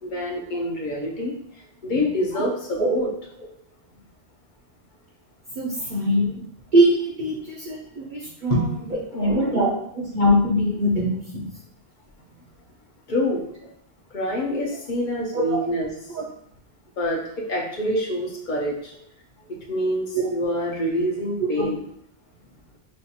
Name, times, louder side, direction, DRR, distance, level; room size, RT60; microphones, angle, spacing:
voice 1, 0.0-1.3 1.8-3.1 5.8-5.9 7.3-7.4 8.5-8.7 9.1-9.6 13.1-13.4 14.1-15.9 17.0-18.9 19.5-21.8, left 1 dB, 50° left, -1 dB, 0.9 m, -26 dB
voice 2, 5.6-6.4 6.7-7.8 8.0-8.6 9.2-9.7 9.9-11.4 15.3-15.6 16.1-16.2 20.1-20.3 21.6-21.7, equal, 50° right, -5 dB, 0.8 m, -22 dB
5.4 x 2.5 x 2.8 m, 0.70 s
omnidirectional pair, 1.1 m